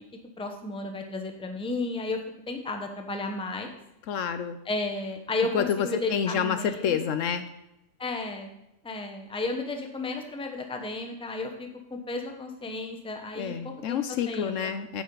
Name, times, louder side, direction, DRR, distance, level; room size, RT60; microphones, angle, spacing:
voice 1, 0.4-2.2 2.5-3.8 4.6-7.0 8.0-8.5 8.8-14.0 14.3-14.7, left 2 dB, 5° left, 4 dB, 0.7 m, -33 dB
voice 2, 4.1-4.6 5.5-7.5 13.4-15.0, left 8 dB, 70° left, 10 dB, 0.9 m, -28 dB
8.6 x 8.4 x 3.9 m, 0.86 s
omnidirectional pair, 1.4 m